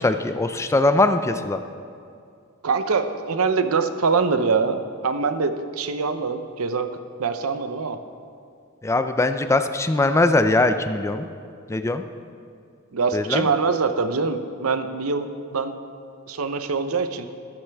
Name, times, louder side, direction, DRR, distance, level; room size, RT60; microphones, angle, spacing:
voice 1, 0.0-1.6 8.8-11.3 11.7-12.0 13.1-13.5, left 2 dB, 15° left, 9 dB, 0.4 m, -21 dB
voice 2, 2.6-4.8 5.0-6.9 7.2-8.0 12.9-15.8 16.3-17.3, right 4 dB, 85° right, 9 dB, 0.7 m, -24 dB
12.5 x 11.5 x 3.5 m, 2.4 s
head